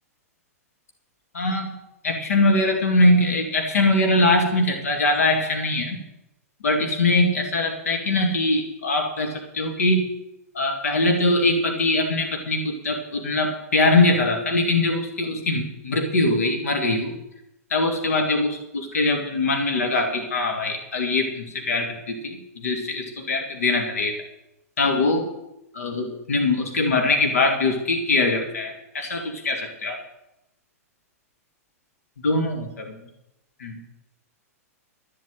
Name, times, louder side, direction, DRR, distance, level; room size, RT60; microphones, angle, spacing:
voice 1, 1.3-1.8 2.0-6.0 6.6-10.1 10.5-17.1 17.7-24.1 24.8-25.3 25.7-30.0 32.2-32.9 33.6-33.8, left 2 dB, 70° left, 3 dB, 2.2 m, -22 dB
13.0 x 7.7 x 9.0 m, 0.87 s
figure-of-eight pair, 105°, 8 cm